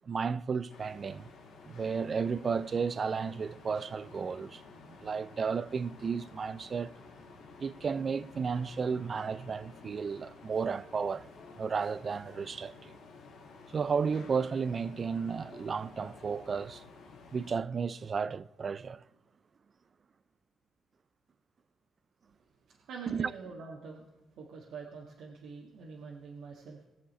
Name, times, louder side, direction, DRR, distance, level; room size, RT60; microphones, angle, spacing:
voice 1, 0.1-1.3 1.6-4.6 4.9-6.9 7.6-11.3 11.5-13.0 13.7-16.8 17.3-19.0 23.1-23.3, right 5 dB, 40° right, 0.4 m, -33 dB
sound 1, 0.7-17.6, left 4 dB, 85° left, 1.7 m, -52 dB
voice 2, 22.9-24.0 24.4-26.8, right 5 dB, 80° right, 1.7 m, -45 dB
20.0 x 7.4 x 4.2 m
cardioid pair, 90°, 0 cm